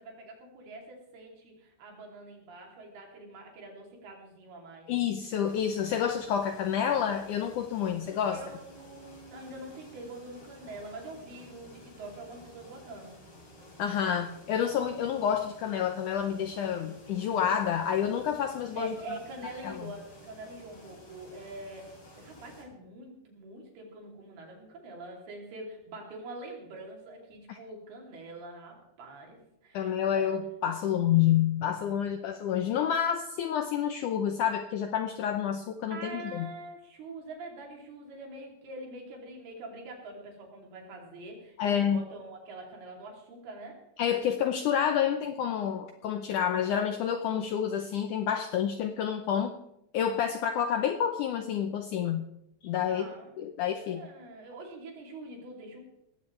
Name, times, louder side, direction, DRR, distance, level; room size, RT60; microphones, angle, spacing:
voice 1, 0.0-4.9 8.3-13.2 18.7-30.3 35.9-43.8 52.9-53.3 53.7-55.8, right 2 dB, 80° right, 0 dB, 5.0 m, -45 dB
voice 2, 4.9-8.4 13.8-18.9 19.6-19.8 27.5-27.6 29.7-36.5 41.6-42.0 44.0-49.5 49.9-52.3 52.6-53.1 53.4-54.0, left 9 dB, 80° left, 7 dB, 1.8 m, -29 dB
sound 1, 5.4-22.6, left 1 dB, 35° left, 4.4 m, -53 dB
19.0 x 15.0 x 3.3 m, 0.81 s
omnidirectional pair, 4.5 m